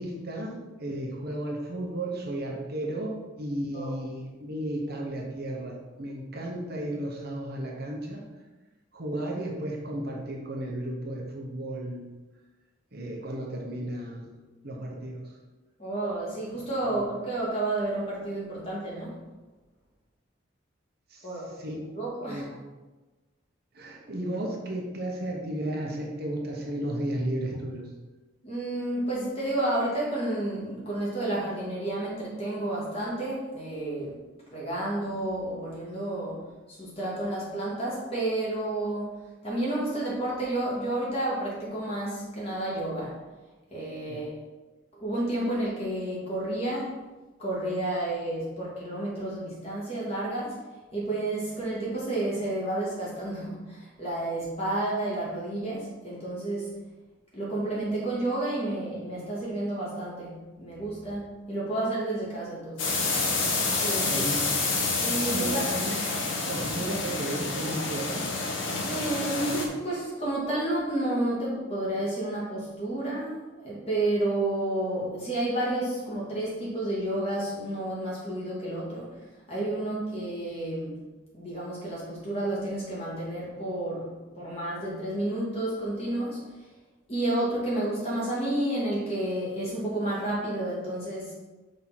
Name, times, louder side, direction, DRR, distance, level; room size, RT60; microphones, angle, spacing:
voice 1, 0.0-8.2 8.9-12.1 12.9-14.3 14.6-15.2 21.1-21.3 21.6-21.8 22.2-22.5 23.7-27.9 44.1-44.2 64.1-64.6 65.3-66.0 66.5-68.2 68.7-68.8, right 1 dB, 50° right, -1 dB, 1.1 m, -34 dB
voice 2, 15.8-19.2 21.2-22.6 28.4-34.2 34.5-36.4 36.7-39.1 39.4-43.2 43.7-44.3 44.9-47.0 47.4-50.6 50.9-56.8 57.3-63.1 63.6-64.5 65.0-65.7 68.8-79.2 79.5-81.0 81.3-86.4 87.1-91.3, right 1 dB, 30° left, -6 dB, 2.4 m, -31 dB
sound 1, 62.8-69.7, left 3 dB, 65° left, 1.2 m, -28 dB
5.8 x 3.8 x 6.0 m, 1.2 s
head